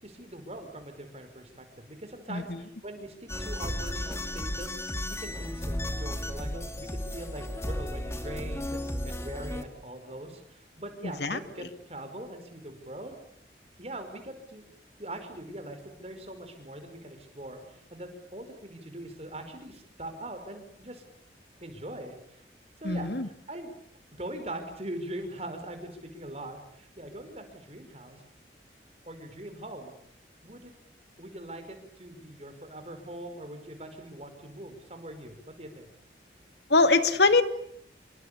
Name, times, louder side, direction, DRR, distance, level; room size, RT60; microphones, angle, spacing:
voice 1, 0.0-4.7 5.1-8.8 9.0-13.2 13.8-14.7 15.0-21.0 21.6-22.4 22.8-23.7 24.1-28.2 29.0-29.9 30.4-30.7 31.2-35.9, right 1 dB, 35° right, 7 dB, 5.4 m, -42 dB
sound 1, 3.3-9.6, left 1 dB, 15° left, 2.5 m, -34 dB
voice 2, 22.8-23.3 36.7-37.4, left 3 dB, 75° left, 9 dB, 2.2 m, -22 dB
27.0 x 24.0 x 8.6 m, 0.70 s
head